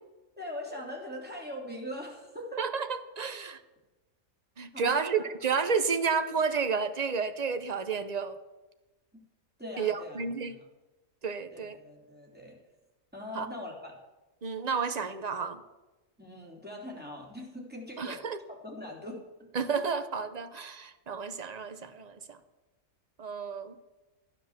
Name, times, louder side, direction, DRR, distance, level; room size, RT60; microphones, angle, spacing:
voice 1, 0.4-2.6 4.7-5.3 9.6-10.6 11.5-12.6 13.1-13.9 16.2-18.2 18.5-19.5, left 1 dB, 5° right, -3 dB, 3.4 m, -41 dB
voice 2, 2.6-3.6 4.6-8.4 9.8-10.6 11.2-11.8 13.3-13.5 14.4-15.6 18.0-18.4 19.5-22.4 23.2-23.7, right 5 dB, 35° right, 10 dB, 0.8 m, -31 dB
13.0 x 9.9 x 7.3 m, 1.1 s
omnidirectional pair, 1.5 m